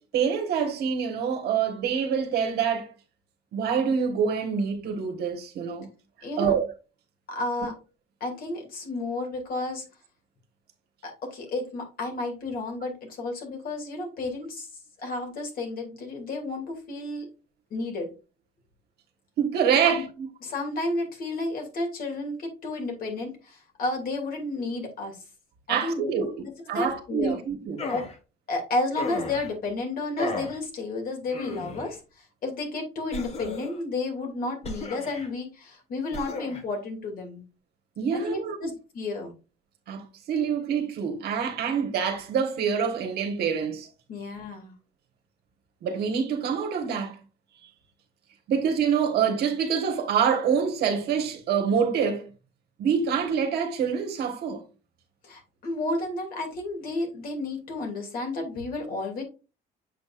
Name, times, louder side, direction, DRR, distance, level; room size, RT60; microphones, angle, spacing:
voice 1, 0.0-2.9 3.5-5.9 6.4-6.7 19.4-20.3 25.7-26.4 26.7-27.9 38.0-38.7 39.9-43.9 45.8-47.2 48.5-52.3 52.8-54.6, right 7 dB, 70° right, 1.5 m, -26 dB
voice 2, 6.2-6.5 7.3-7.7 8.2-9.8 11.0-14.7 15.0-17.3 17.7-18.1 19.8-20.0 20.4-25.2 25.7-27.4 27.9-28.1 28.5-37.4 38.1-39.3 44.1-44.7 55.2-59.2, left 2 dB, 60° left, 2.7 m, -32 dB
sound 1, 27.8-28.2 29.0-29.5 30.2-30.6 31.3-31.9 33.1-33.8 34.6-35.3 36.1-36.6, left 3 dB, 40° left, 1.5 m, -35 dB
7.6 x 5.4 x 2.5 m
cardioid pair, 110°, 17 cm